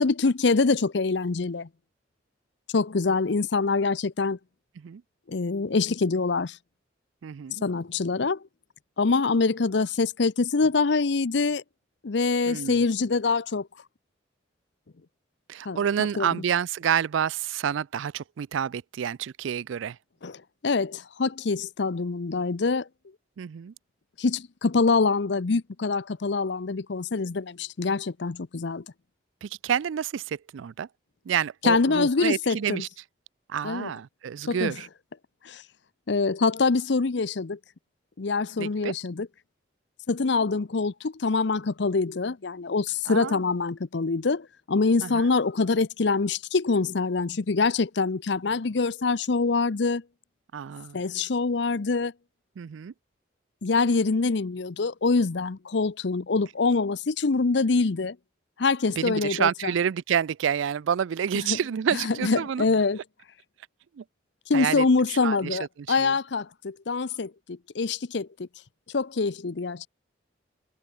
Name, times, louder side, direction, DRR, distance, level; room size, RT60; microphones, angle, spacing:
voice 1, 0.0-1.7 2.7-4.4 5.3-6.6 7.5-8.4 9.0-11.6 12.0-13.7 15.7-15.8 16.2-16.3 20.2-22.9 24.2-28.8 31.6-32.8 33.6-33.9 34.5-34.7 35.4-35.6 36.1-37.6 38.2-39.3 40.1-50.0 50.9-52.1 53.6-58.2 58.6-59.7 61.4-61.6 61.9-63.0 64.5-68.5 68.9-69.9, left 4 dB, 65° left, 0.6 m, -25 dB
voice 2, 7.2-7.6 12.5-12.8 15.5-20.0 23.4-23.7 29.4-30.9 31.3-32.9 33.5-34.9 38.6-38.9 43.1-43.4 45.0-45.3 50.5-51.0 52.6-52.9 59.0-62.7 64.0-64.1 64.5-65.6 66.0-66.1, right 8 dB, 80° right, 0.4 m, -29 dB
head